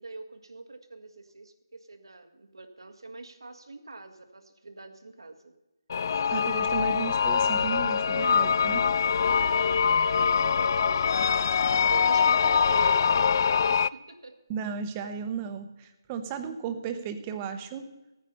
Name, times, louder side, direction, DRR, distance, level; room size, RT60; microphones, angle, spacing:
voice 1, 0.0-5.5 9.3-14.4, right 3 dB, 85° right, 7 dB, 1.7 m, -43 dB
sound 1, 5.9-13.9, left 6 dB, 50° left, 0.3 m, -24 dB
voice 2, 6.3-8.8 14.5-17.9, right 7 dB, 20° right, 9 dB, 1.0 m, -34 dB
14.5 x 9.4 x 5.5 m, 1.0 s
figure-of-eight pair, 155°, 2 cm